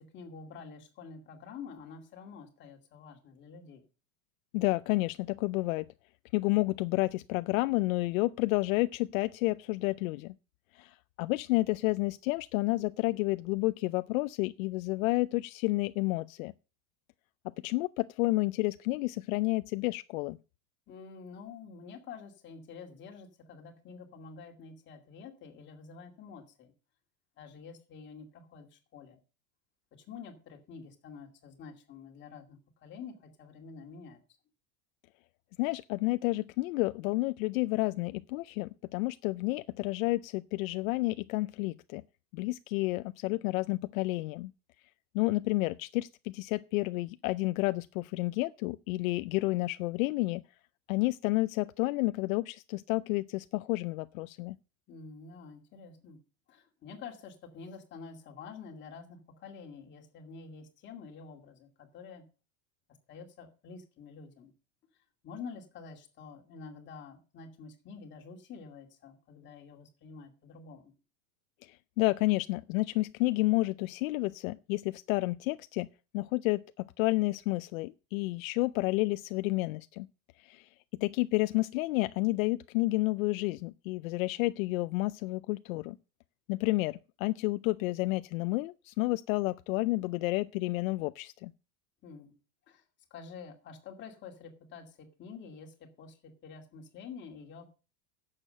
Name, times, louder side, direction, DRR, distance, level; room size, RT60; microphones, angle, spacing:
voice 1, 0.0-3.8 20.9-26.7 27.4-29.2 29.9-34.2 54.9-56.2 56.5-62.2 63.1-64.5 65.2-70.9 92.0-92.3 92.7-92.8 93.1-97.7, left 5 dB, 25° left, 2.4 m, -48 dB
voice 2, 4.5-5.9 6.3-10.3 10.7-16.5 17.4-20.4 35.6-42.0 42.3-44.5 45.1-50.4 50.9-54.6 71.6-75.9 76.1-80.1 80.4-80.7 81.0-86.0 86.5-91.5, left 21 dB, 70° left, 0.6 m, -30 dB
11.0 x 7.5 x 6.6 m
supercardioid pair, 170°, 42 cm